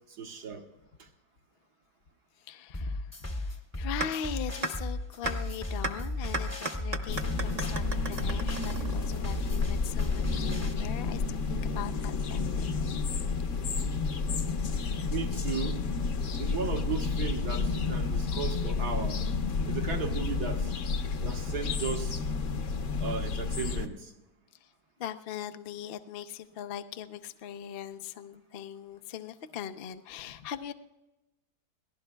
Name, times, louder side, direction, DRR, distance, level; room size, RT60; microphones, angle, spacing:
voice 1, 0.2-0.7 1.0-1.1 12.6-12.7 15.1-15.8 16.3-19.2 19.7-20.7 21.2-22.2 23.0-24.1, right 6 dB, 70° right, 3 dB, 1.7 m, -36 dB
voice 2, 2.4-12.9 24.6-24.7 25.0-30.7, left 8 dB, 80° left, 9 dB, 0.5 m, -41 dB
sound 1, 2.7-10.7, left 2 dB, 15° left, 0.5 m, -35 dB
sound 2, 4.0-4.1 4.6-4.7 5.3-5.4 5.8-5.9 6.3-9.3, right 2 dB, 40° right, 1.1 m, -33 dB
sound 3, 7.1-23.9, left 4 dB, 55° left, 0.9 m, -31 dB
27.5 x 18.5 x 2.3 m, 1.0 s
omnidirectional pair, 1.8 m